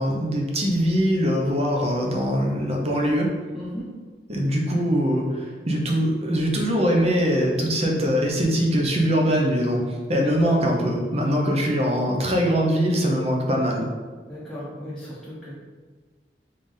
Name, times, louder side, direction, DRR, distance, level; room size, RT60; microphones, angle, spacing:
voice 1, 0.0-3.3 4.3-13.9, equal, 35° right, 0 dB, 0.8 m, -22 dB
voice 2, 3.5-3.9 10.1-10.5 14.3-15.5, equal, 5° left, -9 dB, 0.9 m, -36 dB
4.1 x 3.4 x 3.7 m, 1.4 s
head